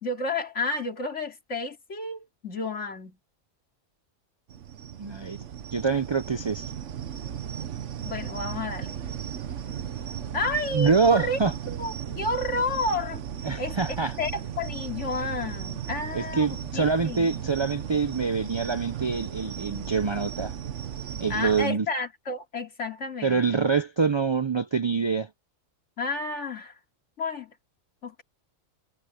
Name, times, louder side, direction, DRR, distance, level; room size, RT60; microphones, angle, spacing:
voice 1, 0.0-3.2 8.0-9.0 10.3-11.4 11.7-13.2 13.6-17.3 21.3-23.6 26.0-26.7 27.2-27.5 28.0-28.2, left 2 dB, 60° left, 3.0 m, -31 dB
sound 1, 4.5-21.6, right 9 dB, 65° right, 1.3 m, -36 dB
voice 2, 5.0-5.4 5.7-6.7 10.7-11.5 13.4-14.1 16.1-20.5 21.2-21.9 23.2-25.3, right 5 dB, 45° right, 0.3 m, -25 dB
omnidirectional pair, 1.4 m